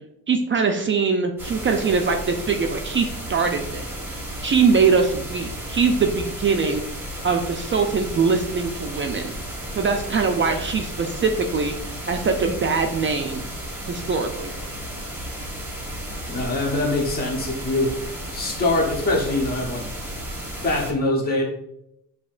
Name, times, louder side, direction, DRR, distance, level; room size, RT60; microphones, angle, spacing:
voice 1, 0.3-3.8 4.1-6.8 7.2-9.3 9.8-13.4 13.9-14.5, right 5 dB, 35° right, 4 dB, 0.4 m, -22 dB
sound 1, 1.4-20.9, right 1 dB, 5° right, 1.1 m, -33 dB
voice 2, 16.3-17.9 18.3-19.9 20.6-21.4, left 2 dB, 25° left, -2 dB, 1.0 m, -23 dB
7.1 x 2.9 x 2.4 m, 0.81 s
wide cardioid pair, 150°, 34 cm